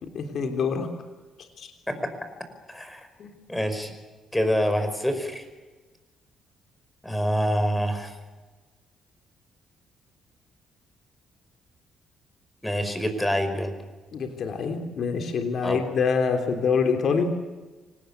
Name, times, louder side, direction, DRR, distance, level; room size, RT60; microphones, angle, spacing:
voice 1, 0.0-0.9 1.6-1.7 3.2-3.3 14.1-17.3, left 5 dB, 60° left, 5 dB, 3.4 m, -25 dB
voice 2, 2.7-3.1 3.5-3.9 4.3-5.5 7.0-8.1 12.6-13.7 15.6-15.8, equal, 10° left, 8 dB, 5.2 m, -26 dB
25.5 x 19.0 x 8.4 m, 1.2 s
cardioid pair, 90°, 0 cm